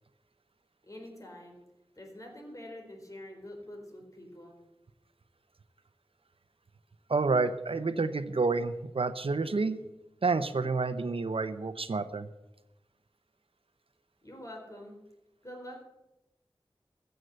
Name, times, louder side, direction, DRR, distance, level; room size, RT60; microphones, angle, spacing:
voice 1, 0.8-1.6 2.0-4.6 14.2-15.0 15.4-15.9, left 1 dB, 35° left, 2 dB, 4.2 m, -46 dB
voice 2, 7.1-9.8 10.2-12.3, right 4 dB, 75° right, 11 dB, 0.8 m, -29 dB
14.5 x 7.8 x 7.9 m, 0.97 s
wide cardioid pair, 55°, 10 cm